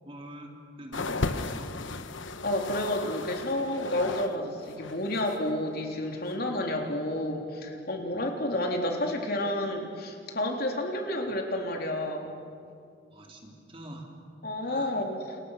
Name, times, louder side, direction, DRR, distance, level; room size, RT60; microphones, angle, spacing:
voice 1, 0.0-1.7 8.1-8.3 13.1-14.1 14.6-15.0, right 1 dB, 30° right, 0 dB, 3.6 m, -44 dB
sound 1, 0.9-4.4 4.6-5.5 6.3-6.4, left 3 dB, 80° left, 1.1 m, -35 dB
voice 2, 2.4-12.4 14.4-15.4, left 1 dB, 50° left, 2 dB, 3.5 m, -30 dB
29.5 x 29.5 x 6.6 m, 2.4 s
head